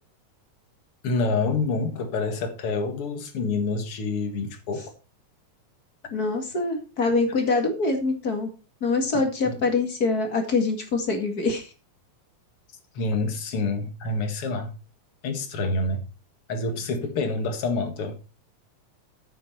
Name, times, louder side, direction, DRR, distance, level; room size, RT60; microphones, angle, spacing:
voice 1, 1.0-4.9 9.1-9.6 12.9-14.7 15.2-16.0 16.5-18.3, left 3 dB, 50° left, 2.3 m, -27 dB
voice 2, 6.1-8.5 8.8-11.7, left 3 dB, 35° left, 2.1 m, -24 dB
9.0 x 8.6 x 4.3 m
omnidirectional pair, 3.4 m